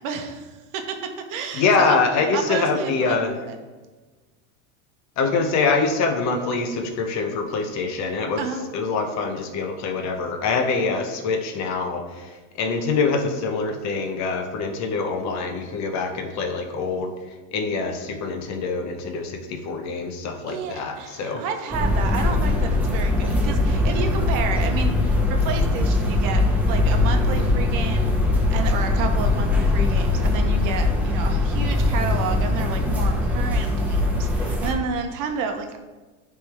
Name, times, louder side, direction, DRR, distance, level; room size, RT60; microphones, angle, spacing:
voice 1, 0.0-2.0 2.3-3.2 3.5-3.6 8.4-8.6 20.5-35.8, right 5 dB, 50° right, 5 dB, 0.9 m, -30 dB
voice 2, 1.5-3.3 5.2-8.5 8.7-12.3 12.6-17.1 17.5-21.4, left 4 dB, 45° left, 5 dB, 0.9 m, -24 dB
sound 1, 21.7-34.7, left 2 dB, 5° right, 1.0 m, -21 dB
9.2 x 3.4 x 3.4 m, 1.3 s
supercardioid pair, 120°, 40 cm